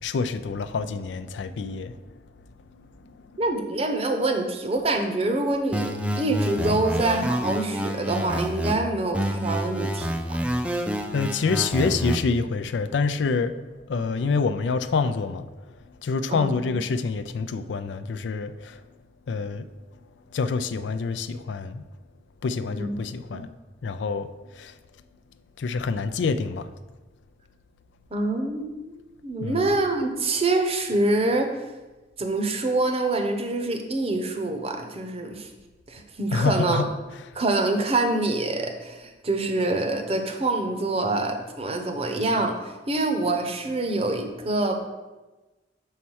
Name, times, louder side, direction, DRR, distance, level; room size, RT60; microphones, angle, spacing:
voice 1, 0.0-2.0 2.7-3.5 10.6-18.8 19.3-19.7 20.3-21.9 22.4-23.5 23.8-24.8 25.6-26.7 29.4-29.7 36.3-37.4, left 4 dB, 80° left, 10 dB, 0.4 m, -27 dB
voice 2, 3.4-10.4 16.3-16.5 22.7-22.9 23.3-23.4 28.1-31.5 32.2-35.5 35.9-36.8 37.3-44.8, right 2 dB, 35° right, 5 dB, 0.8 m, -26 dB
sound 1, 5.7-8.7 9.1-12.2, equal, 5° right, 0.4 m, -28 dB
5.6 x 4.2 x 6.2 m, 1.2 s
head